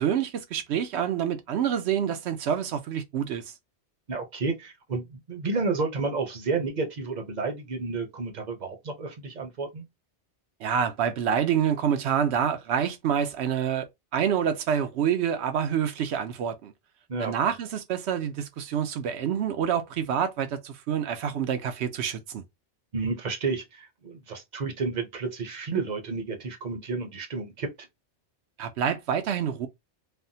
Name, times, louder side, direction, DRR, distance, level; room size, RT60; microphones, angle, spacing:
voice 1, 0.0-3.4 10.6-13.9 14.1-16.7 17.2-22.4 28.6-29.7, right 8 dB, 75° right, 0.9 m, -27 dB
voice 2, 4.1-9.8 17.1-17.3 22.9-27.7, right 4 dB, 45° right, 0.8 m, -31 dB
3.4 x 2.1 x 2.7 m
omnidirectional pair, 1.2 m